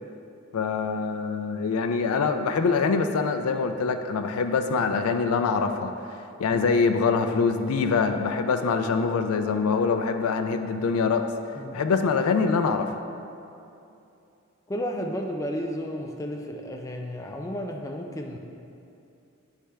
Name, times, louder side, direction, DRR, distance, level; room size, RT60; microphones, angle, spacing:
voice 1, 0.5-11.2 11.7-12.9, left 5 dB, 90° left, 7 dB, 0.4 m, -24 dB
voice 2, 14.7-18.4, equal, 15° left, 2 dB, 0.3 m, -32 dB
9.6 x 3.3 x 3.3 m, 2.7 s
head